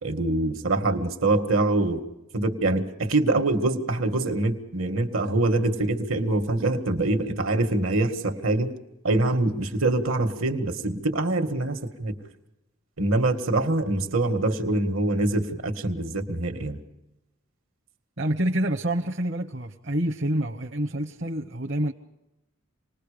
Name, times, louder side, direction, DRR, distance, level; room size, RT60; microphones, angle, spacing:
voice 1, 0.0-2.0 2.3-8.7 9.0-12.1 13.0-16.8, right 2 dB, 75° right, 6 dB, 1.8 m, -24 dB
voice 2, 18.2-21.9, right 1 dB, 55° right, 1 dB, 1.1 m, -27 dB
27.5 x 20.5 x 5.1 m, 0.93 s
head